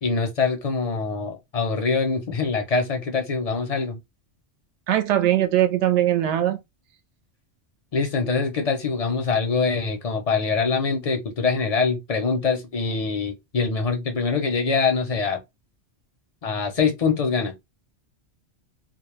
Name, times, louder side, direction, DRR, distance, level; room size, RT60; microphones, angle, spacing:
voice 1, 0.0-4.0 7.9-15.4 16.4-17.5, left 4 dB, 45° left, 0.5 m, -24 dB
voice 2, 4.9-6.6, right 12 dB, 75° right, 0.9 m, -20 dB
2.2 x 2.0 x 3.0 m
omnidirectional pair, 1.2 m